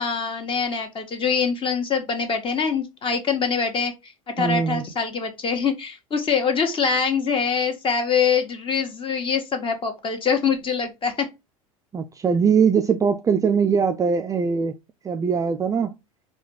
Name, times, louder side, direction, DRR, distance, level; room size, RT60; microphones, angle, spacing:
voice 1, 0.0-11.3, left 6 dB, 30° left, 1.2 m, -24 dB
voice 2, 4.4-4.9 11.9-14.8 15.0-15.9, right 6 dB, 20° right, 0.4 m, -21 dB
4.6 x 2.3 x 3.1 m
figure-of-eight pair, 75°, 18 cm